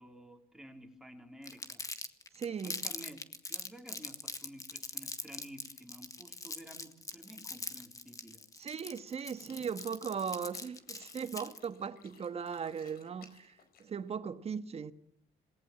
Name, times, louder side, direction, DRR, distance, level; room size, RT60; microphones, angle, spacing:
voice 1, 0.0-1.8 2.6-8.5, equal, 5° right, 4.1 m, -52 dB
Crumpling crinkling, 1.4-11.7, left 3 dB, 20° left, 1.8 m, -42 dB
voice 2, 2.3-2.8 8.6-14.9, right 6 dB, 35° right, 1.5 m, -38 dB
sound 1, 9.4-14.2, left 6 dB, 65° left, 4.7 m, -61 dB
27.0 x 19.0 x 7.7 m
cardioid pair, 110°, 17 cm